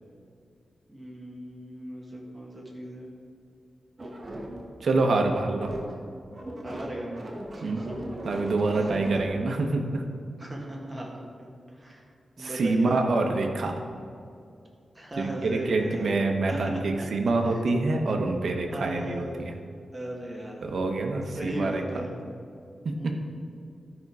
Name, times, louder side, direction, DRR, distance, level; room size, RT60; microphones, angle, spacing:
voice 1, 0.9-3.1 6.6-7.2 7.5-8.0 10.4-12.0 12.4-13.0 15.0-16.2 16.5-16.8 17.4-17.6 18.7-19.4 19.9-20.6 21.3-22.1 23.0-23.1, right 1 dB, 15° right, -2 dB, 1.6 m, -37 dB
sound 1, 4.0-6.1 6.3-9.2, right 1 dB, 30° right, 1.3 m, -37 dB
voice 2, 4.8-5.7 7.6-7.8 8.2-10.0 12.4-13.8 15.2-19.5 20.6-21.8 23.0-23.1, right 3 dB, 65° right, 3 dB, 1.0 m, -26 dB
12.5 x 5.3 x 4.8 m, 2.4 s
wide cardioid pair, 145°, 0 cm